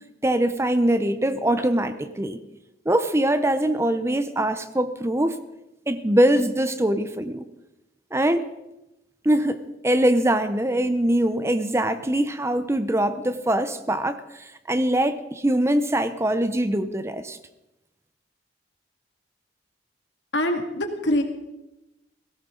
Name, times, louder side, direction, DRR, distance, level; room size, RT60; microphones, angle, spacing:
voice 1, 0.2-2.4 2.9-5.4 5.9-7.4 8.1-8.5 9.2-17.4, right 1 dB, 15° right, 11 dB, 0.6 m, -23 dB
voice 2, 20.3-21.2, left 1 dB, 75° left, 4 dB, 2.2 m, -24 dB
18.0 x 17.0 x 3.8 m, 0.94 s
head